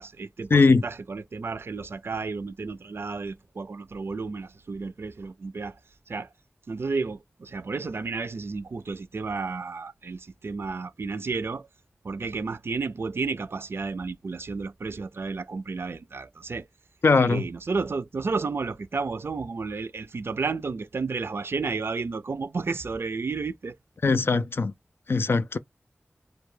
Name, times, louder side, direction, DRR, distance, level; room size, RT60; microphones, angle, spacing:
voice 1, 0.0-5.8 6.1-6.3 6.7-11.7 12.0-16.7 17.1-23.7, right 4 dB, 65° right, 0.4 m, -32 dB
voice 2, 0.5-0.8 17.0-17.4 24.0-24.7 25.1-25.6, left 4 dB, 60° left, 0.3 m, -20 dB
2.2 x 2.2 x 3.0 m
wide cardioid pair, 50°, 4 cm